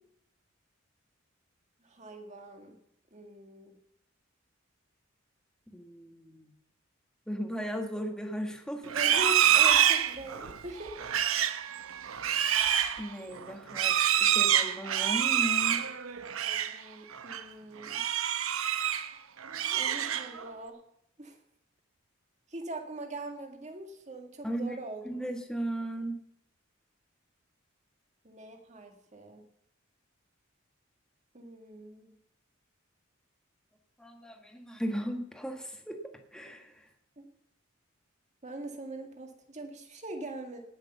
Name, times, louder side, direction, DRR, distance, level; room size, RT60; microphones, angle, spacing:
voice 1, 1.8-2.8 3.1-3.7 8.9-11.5 16.4-18.0 19.7-20.8 21.2-21.4 22.5-25.1 28.2-29.4 31.3-32.1 37.2-37.3 38.4-40.6, right 2 dB, 35° right, 4 dB, 1.9 m, -42 dB
voice 2, 5.7-6.5 7.3-9.0 13.0-15.8 24.4-24.7 25.0-26.2 34.0-36.0 36.3-36.9, equal, 5° left, 4 dB, 1.4 m, -36 dB
Livestock farm animals working animals, 8.9-16.8 17.1-17.4 17.8-19.1 19.4-20.5, right 10 dB, 85° right, 0.8 m, -27 dB
18.0 x 6.5 x 6.9 m, 0.74 s
head